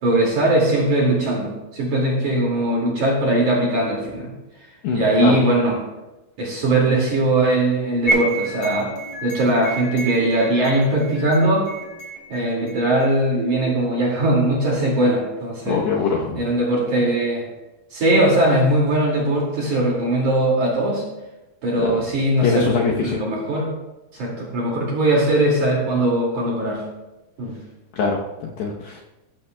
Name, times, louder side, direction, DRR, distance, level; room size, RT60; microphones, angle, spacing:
voice 1, 0.0-4.3 4.9-5.8 6.4-8.9 9.2-11.7 12.3-15.8 16.3-17.4 17.9-21.0 21.6-22.7 23.0-23.7 24.1-26.8 27.4-27.6, right 1 dB, 45° right, -3 dB, 3.0 m, -20 dB
voice 2, 4.8-5.3 15.7-16.4 21.8-21.9 22.4-23.2 28.0-29.0, left 5 dB, 75° left, -2 dB, 2.6 m, -23 dB
sound 1, 8.1-13.1, right 2 dB, 30° left, 3.3 m, -29 dB
16.0 x 13.5 x 2.3 m, 1.0 s
omnidirectional pair, 5.9 m